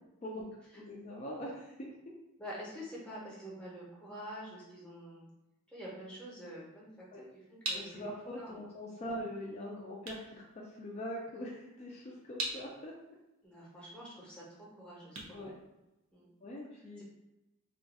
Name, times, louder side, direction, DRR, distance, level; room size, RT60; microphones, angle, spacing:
voice 1, 0.8-2.0 7.1-7.2 7.7-12.9 15.3-15.5 16.4-17.0, equal, 30° left, -3 dB, 0.4 m, -42 dB
voice 2, 2.4-5.3 5.7-8.0 8.4-8.6 8.9-9.0 13.4-15.5 16.1-16.3 17.0-17.1, equal, 5° left, -6 dB, 0.7 m, -47 dB
sound 1, 7.0-16.4, right 2 dB, 70° right, 0.7 m, -45 dB
2.4 x 2.3 x 4.0 m, 0.96 s
head